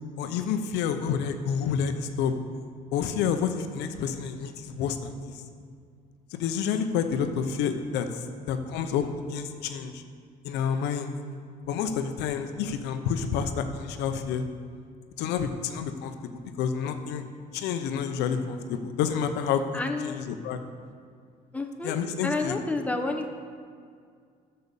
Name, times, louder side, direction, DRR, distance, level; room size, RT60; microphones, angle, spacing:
voice 1, 0.2-2.3 2.9-5.3 6.3-10.0 10.4-11.1 11.7-14.4 15.2-16.1 16.6-17.3 17.5-19.7 20.0-20.6 21.8-22.6, left 7 dB, 90° left, 7 dB, 0.8 m, -29 dB
voice 2, 19.7-20.2 21.5-21.9 22.2-23.4, left 3 dB, 10° left, 4 dB, 0.9 m, -30 dB
8.3 x 6.7 x 6.8 m, 2.2 s
cardioid pair, 110°, 17 cm